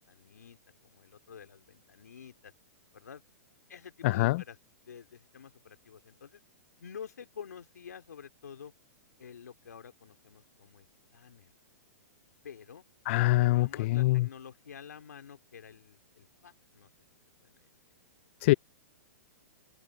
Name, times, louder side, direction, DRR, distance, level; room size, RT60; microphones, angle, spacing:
voice 1, 0.0-2.5 2.9-3.2 3.7-4.6 4.8-6.4 6.8-8.7 9.2-10.9 11.1-11.5 12.4-12.8 13.4-16.9 17.4-17.6, left 7 dB, 85° left, 3.2 m, -49 dB
voice 2, 4.0-4.4 13.1-14.3 18.4-18.5, left 19 dB, 50° left, 0.4 m, -24 dB
hypercardioid pair, 130°, 9 cm